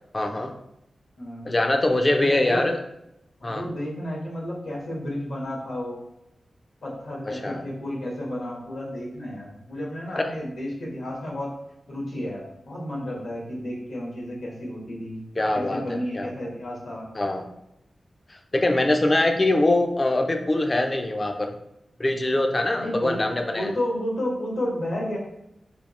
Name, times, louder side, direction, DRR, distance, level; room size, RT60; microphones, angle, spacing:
voice 1, 0.1-0.5 1.4-2.8 3.4-3.6 7.3-7.6 10.2-10.3 15.4-16.3 17.2-17.5 18.3-21.5 22.0-23.7, left 2 dB, 30° left, 4 dB, 0.5 m, -23 dB
voice 2, 1.2-1.5 2.2-2.7 3.4-6.0 6.8-11.5 11.9-15.2 15.5-17.1 22.8-25.2, left 1 dB, 80° left, -3 dB, 1.4 m, -32 dB
3.5 x 2.7 x 4.2 m, 0.83 s
wide cardioid pair, 100°, 0 cm